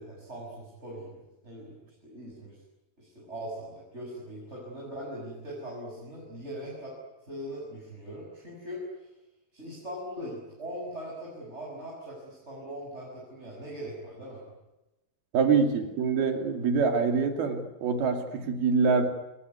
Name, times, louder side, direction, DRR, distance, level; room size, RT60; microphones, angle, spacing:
voice 1, 0.0-1.8 2.0-2.6 3.0-7.0 7.3-9.1 9.5-14.4, equal, 15° right, -3 dB, 6.9 m, -40 dB
voice 2, 15.3-19.0, right 5 dB, 80° right, 5 dB, 4.6 m, -25 dB
29.0 x 21.5 x 9.7 m, 1.0 s
omnidirectional pair, 4.4 m